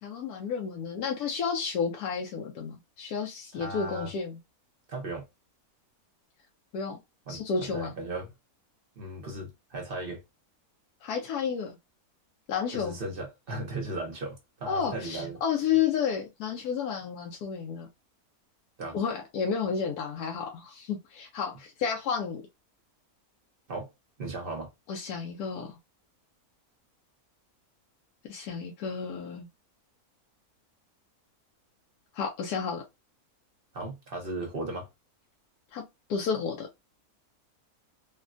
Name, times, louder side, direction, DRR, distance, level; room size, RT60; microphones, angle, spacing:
voice 1, 0.0-4.4 6.7-7.0 7.3-7.9 11.0-11.7 12.5-13.0 14.7-17.9 18.9-22.4 24.9-25.8 28.3-29.5 32.1-32.8 35.7-35.8 36.1-36.7, left 6 dB, 90° left, 1.2 m, -31 dB
voice 2, 3.5-4.1 4.9-5.2 7.3-8.3 9.0-10.2 12.7-15.4 18.8-19.0 23.7-23.9 24.2-24.7 33.7-34.9, right 2 dB, 45° right, 0.8 m, -36 dB
3.4 x 2.2 x 2.4 m
omnidirectional pair, 1.6 m